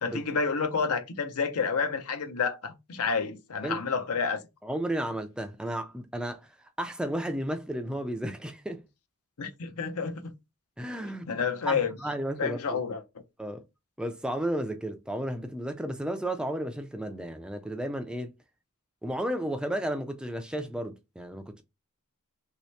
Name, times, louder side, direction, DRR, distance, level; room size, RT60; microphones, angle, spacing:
voice 1, 0.0-4.4 9.4-10.3 11.3-11.9 12.4-13.0, left 5 dB, 80° left, 0.6 m, -29 dB
voice 2, 4.6-8.8 10.8-11.3 11.7-12.8 13.4-13.6 14.0-18.3 19.0-21.6, right 1 dB, 5° right, 0.3 m, -33 dB
3.1 x 2.8 x 3.1 m
head